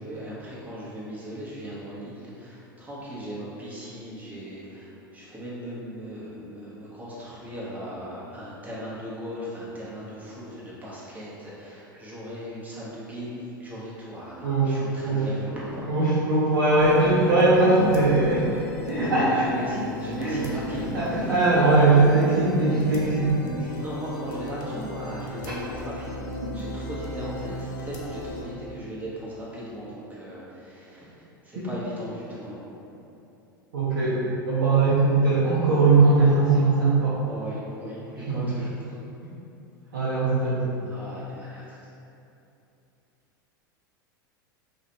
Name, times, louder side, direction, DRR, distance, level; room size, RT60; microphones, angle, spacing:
voice 1, 0.0-15.9 19.2-21.9 23.8-31.1 31.4-32.6 37.3-39.0 40.9-41.8, equal, 15° right, -8 dB, 0.7 m, -38 dB
voice 2, 14.4-14.7 15.0-15.3 15.9-18.5 18.9-19.5 20.2-23.5 26.4-26.5 31.6-31.7 33.7-34.2 34.5-37.2 38.2-38.4 39.9-40.7, right 3 dB, 65° right, -8 dB, 0.5 m, -20 dB
sound 1, 16.8-28.5, left 1 dB, 50° left, 0.4 m, -36 dB
2.4 x 2.1 x 2.8 m, 2.8 s
figure-of-eight pair, 85°, 12 cm